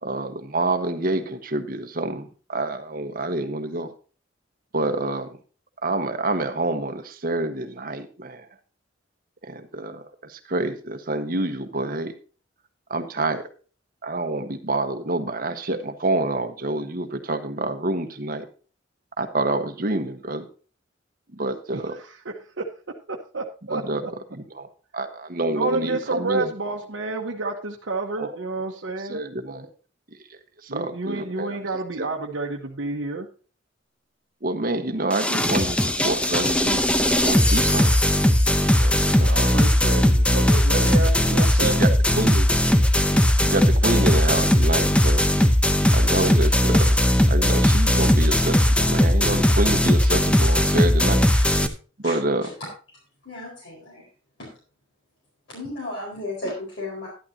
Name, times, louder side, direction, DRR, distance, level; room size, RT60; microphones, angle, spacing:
voice 1, 0.0-3.9 4.7-5.3 5.8-8.5 9.4-12.1 12.9-13.5 14.0-18.4 19.2-20.5 21.3-22.0 23.7-24.0 24.3-24.7 24.9-26.5 28.2-28.3 29.1-29.7 30.6-31.6 32.0-32.1 34.4-36.8 37.2-37.9 38.8-39.6 41.4-42.5 43.4-45.2 45.9-47.0 47.3-51.3 52.0-52.5, right 2 dB, 50° right, 7 dB, 1.3 m, -27 dB
voice 2, 21.7-22.8 23.1-24.1 25.5-29.2 30.7-33.3 39.2-41.9, right 3 dB, 75° right, -1 dB, 1.1 m, -30 dB
sound 1, 35.1-51.7, left 1 dB, 5° left, 0.7 m, -19 dB
voice 3, 51.3-51.7 52.0-52.2 52.4-52.5 53.2-54.1 54.4-54.5 55.5-57.1, left 2 dB, 65° left, -5 dB, 4.6 m, -34 dB
11.5 x 11.5 x 2.8 m, 0.37 s
head